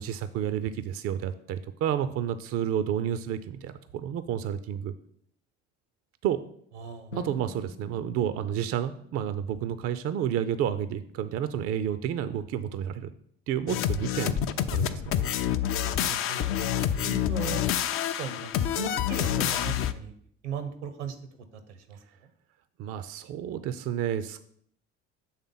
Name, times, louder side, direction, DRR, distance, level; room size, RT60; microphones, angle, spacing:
voice 1, 0.0-4.9 6.2-6.4 7.1-13.1 13.5-15.2 22.8-24.4, right 9 dB, 40° right, 13 dB, 0.5 m, -30 dB
voice 2, 6.7-7.1 15.9-16.6 17.0-17.6 18.2-20.1 20.4-21.1 21.5-22.3, right 5 dB, 75° right, 9 dB, 0.9 m, -38 dB
Drum, 7.1-10.9, left 2 dB, 90° left, 0.7 m, -48 dB
sound 1, 13.7-19.9, left 10 dB, 40° left, 0.5 m, -27 dB
7.2 x 3.5 x 5.5 m, 0.65 s
figure-of-eight pair, 60°, 35 cm